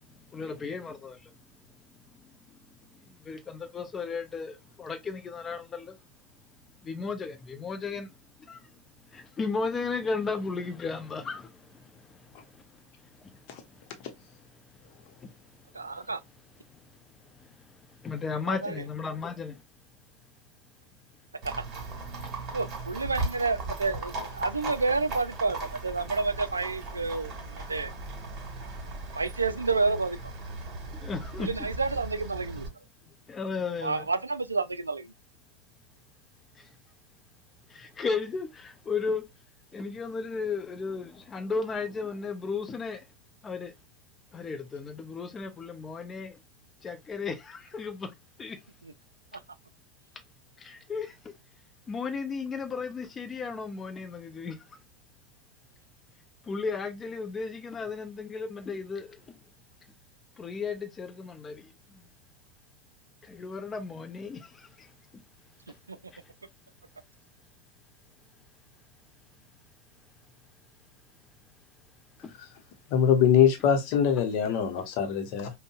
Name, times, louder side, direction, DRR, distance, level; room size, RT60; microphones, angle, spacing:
voice 1, 0.3-1.2 3.3-5.9 6.8-8.1 8.5-8.6 9.1-11.5 18.0-19.5 31.0-31.5 33.3-34.1 37.8-39.2 39.7-43.0 43.4-43.7 44.3-46.3 46.8-48.1 48.4-48.6 50.6-51.1 51.9-54.6 56.5-59.2 60.4-61.6 63.3-64.4, left 4 dB, 20° left, 0.6 m, -34 dB
voice 2, 15.7-16.2 18.5-18.8 21.4-21.6 22.5-27.9 29.1-30.3 31.4-32.7 33.8-35.1 48.8-48.9 65.9-66.0, right 3 dB, 80° right, 0.3 m, -30 dB
Livestock farm animals working animals, 21.4-32.7, right 3 dB, 30° right, 1.7 m, -38 dB
voice 3, 72.9-75.5, left 8 dB, 45° left, 0.9 m, -23 dB
5.2 x 2.2 x 2.3 m
figure-of-eight pair, 90°, 0 cm